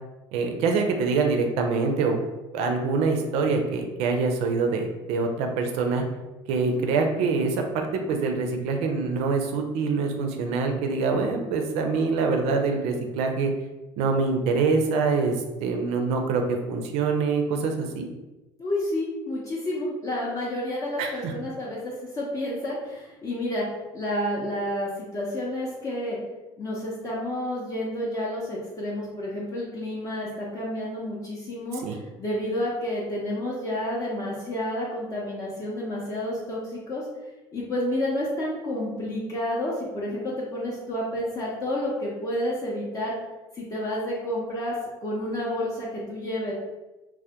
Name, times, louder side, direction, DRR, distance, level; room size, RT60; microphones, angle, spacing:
voice 1, 0.3-2.2 2.5-6.0 6.5-13.5 14.0-18.1 21.0-21.3 31.8-31.9, right 4 dB, 75° right, 4 dB, 0.4 m, -25 dB
voice 2, 18.6-23.7 23.9-26.2 26.6-31.8 32.2-37.0 37.5-43.1 43.5-44.7 45.0-46.5, left 1 dB, 30° left, -5 dB, 0.5 m, -30 dB
2.1 x 2.1 x 2.7 m, 1.1 s
cardioid pair, 120°, 11 cm